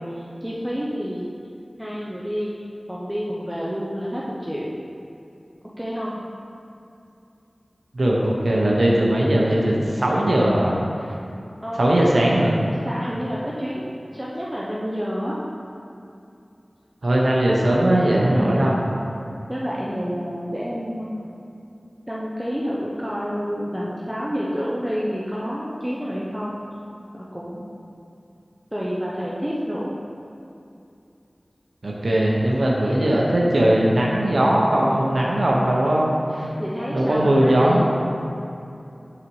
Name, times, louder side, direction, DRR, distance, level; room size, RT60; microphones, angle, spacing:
voice 1, 0.0-1.3 1.8-2.5 2.9-4.7 5.8-6.2 11.6-12.2 12.8-13.9 14.1-15.4 18.2-18.8 19.5-21.2 22.1-26.6 27.1-27.6 28.7-30.0 36.5-37.8, equal, 10° right, -6 dB, 0.7 m, -28 dB
voice 2, 7.9-10.7 11.8-12.6 17.0-18.8 31.8-36.5 36.9-37.8, right 1 dB, 85° right, -3 dB, 0.7 m, -19 dB
5.9 x 4.0 x 4.6 m, 2.6 s
wide cardioid pair, 60°, 0 cm